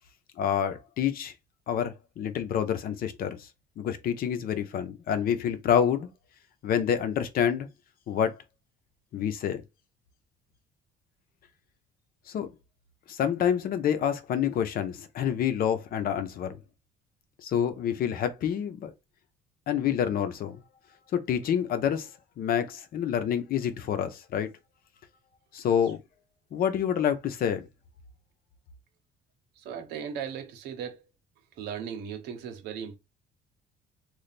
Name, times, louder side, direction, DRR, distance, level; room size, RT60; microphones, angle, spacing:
voice 1, 0.4-1.3 1.7-3.5 3.8-6.1 6.6-7.7 8.1-8.4 9.1-9.6 12.3-12.5 13.1-16.6 17.4-18.9 19.7-20.6 21.1-22.1 22.4-24.5 25.5-26.0 26.5-27.7, left 9 dB, 60° left, 0.8 m, -27 dB
voice 2, 29.6-31.0 31.6-33.0, right 8 dB, 85° right, 1.0 m, -37 dB
3.3 x 2.4 x 4.1 m
cardioid pair, 110°, 17 cm